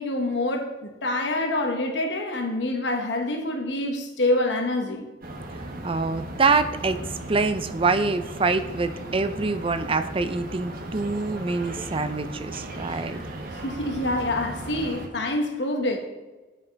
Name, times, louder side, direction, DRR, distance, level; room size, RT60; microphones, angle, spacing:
voice 1, 0.0-5.0 13.6-16.0, left 1 dB, 70° left, 4 dB, 1.0 m, -26 dB
sound 1, 5.2-15.1, right 1 dB, 55° right, 1.1 m, -37 dB
voice 2, 5.8-7.0 7.3-13.2, right 3 dB, 30° right, 10 dB, 0.5 m, -25 dB
8.4 x 5.8 x 5.2 m, 1.2 s
head